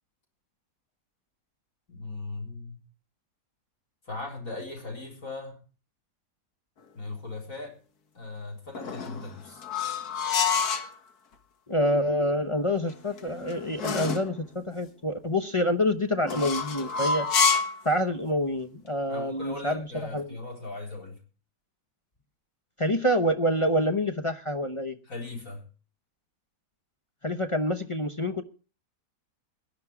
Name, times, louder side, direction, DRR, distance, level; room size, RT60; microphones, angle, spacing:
voice 1, 1.9-2.8 4.1-5.6 6.9-7.8 8.1-9.6 19.1-21.2 25.0-25.6, left 2 dB, 55° left, 4.5 m, -38 dB
sound 1, 8.7-10.9 12.9-14.3 16.2-17.8, left 5 dB, 70° left, 1.9 m, -28 dB
voice 2, 11.7-17.3 17.8-19.9 20.1-20.3 22.8-25.0 27.2-28.4, left 1 dB, 30° left, 0.5 m, -27 dB
17.0 x 11.0 x 4.8 m
omnidirectional pair, 1.7 m